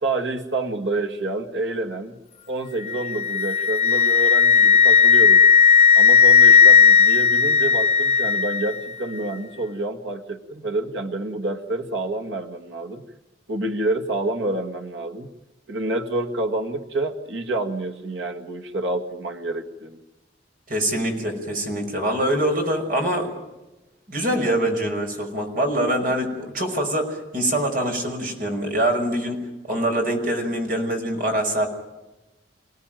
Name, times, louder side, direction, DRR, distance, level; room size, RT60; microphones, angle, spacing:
voice 1, 0.0-2.2 2.5-5.5 6.0-13.0 13.5-15.3 15.7-20.0, right 2 dB, 75° right, 3 dB, 2.0 m, -28 dB
Wind instrument woodwind instrument, 2.9-8.8, left 6 dB, 30° left, 1.0 m, -15 dB
voice 2, 20.7-23.3 24.1-29.4 29.7-31.7, right 1 dB, 45° right, 3 dB, 5.6 m, -24 dB
28.5 x 18.0 x 9.2 m, 1.0 s
head